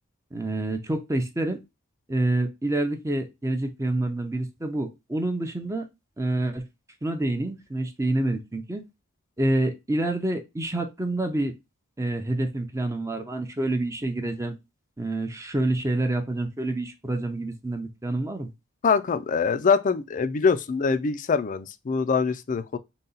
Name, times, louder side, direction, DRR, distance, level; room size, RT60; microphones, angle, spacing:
voice 1, 0.3-1.6 2.1-5.9 6.2-6.6 7.0-8.8 9.4-11.5 12.0-14.5 15.0-18.5, right 1 dB, 15° right, 0.5 m, -27 dB
voice 2, 18.8-22.8, left 5 dB, 40° left, 0.4 m, -24 dB
3.9 x 2.3 x 3.9 m
head